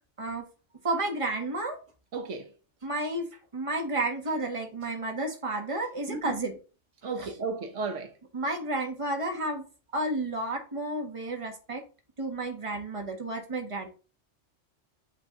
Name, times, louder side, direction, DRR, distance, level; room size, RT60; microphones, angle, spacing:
voice 1, 0.8-1.8 2.8-6.6 7.2-7.3 8.3-9.6 9.9-11.8 12.2-13.9, right 2 dB, 25° right, 1.4 m, -31 dB
voice 2, 2.1-2.5 6.1-6.4 7.0-8.1, right 4 dB, 80° right, 1.3 m, -34 dB
8.3 x 3.4 x 3.7 m
omnidirectional pair, 1.2 m